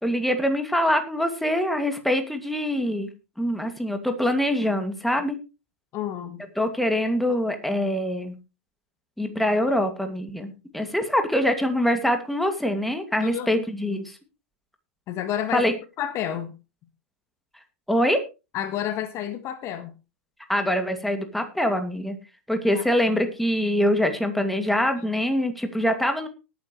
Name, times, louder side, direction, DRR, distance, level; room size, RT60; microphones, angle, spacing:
voice 1, 0.0-3.1 3.4-5.4 6.6-8.4 9.2-14.2 15.5-15.7 17.9-18.2 20.5-22.2 22.5-26.3, equal, ahead, 6 dB, 2.4 m, -24 dB
voice 2, 5.9-6.4 13.2-13.6 15.1-15.6 16.0-16.5 18.5-19.9 22.7-22.8, left 10 dB, 40° left, 10 dB, 1.6 m, -30 dB
18.5 x 9.6 x 3.2 m, 0.29 s
hypercardioid pair, 95°, 7 cm